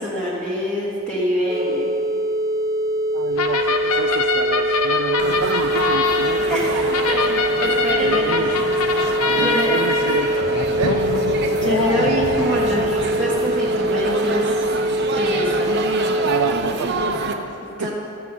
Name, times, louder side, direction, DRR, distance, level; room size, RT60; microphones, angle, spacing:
voice 1, 0.0-1.8 6.5-7.3 7.6-8.6 9.3-9.8 11.6-14.6 15.1-15.8 17.6-17.9, equal, 5° left, -7 dB, 1.5 m, -25 dB
sound 1, 1.5-16.5, right 1 dB, 15° right, 0.6 m, -23 dB
voice 2, 3.1-6.9 8.0-8.5 9.3-10.3 10.8-11.2 16.3-17.5 17.8-17.9, right 5 dB, 85° right, 5 dB, 0.5 m, -28 dB
sound 2, 3.4-13.7, left 4 dB, 85° left, 0.8 m, -24 dB
Laughter / Chatter / Crowd, 5.2-17.3, right 3 dB, 50° right, 0.8 m, -28 dB
13.5 x 6.1 x 7.3 m, 2.8 s
head